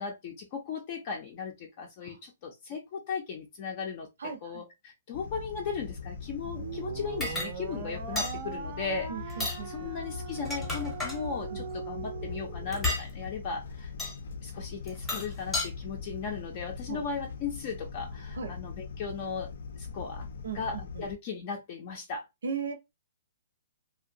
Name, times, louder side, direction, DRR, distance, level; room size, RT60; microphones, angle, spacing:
voice 1, 0.0-13.9 14.4-19.5 19.8-20.3 20.5-22.3, left 5 dB, 35° left, 0.5 m, -37 dB
voice 2, 4.2-4.6 9.1-9.9 11.5-11.7 16.9-17.0 18.3-18.5 20.4-21.0 22.4-22.7, right 6 dB, 85° right, 0.7 m, -37 dB
sound 1, 5.1-21.1, left 5 dB, 85° left, 0.6 m, -41 dB
sound 2, 6.4-12.9, right 7 dB, 35° right, 0.5 m, -41 dB
sound 3, 7.2-7.5 8.2-8.4 9.3-9.6 10.3-11.2 12.7-13.1 14.0-14.2 14.9-15.7, left 2 dB, 5° left, 0.8 m, -32 dB
2.6 x 2.1 x 2.6 m
hypercardioid pair, 165°, 0 cm